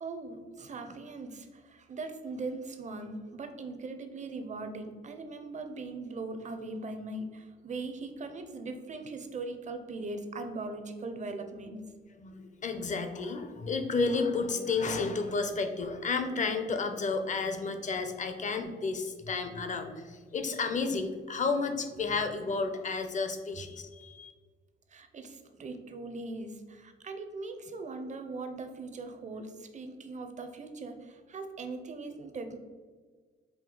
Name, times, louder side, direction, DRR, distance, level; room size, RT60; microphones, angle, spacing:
voice 1, 0.0-11.8 24.9-32.6, right 3 dB, 35° right, 7 dB, 0.6 m, -40 dB
voice 2, 12.2-24.3, left 4 dB, 40° left, 7 dB, 0.6 m, -32 dB
5.0 x 2.7 x 3.8 m, 1.5 s
cardioid pair, 90°, 20 cm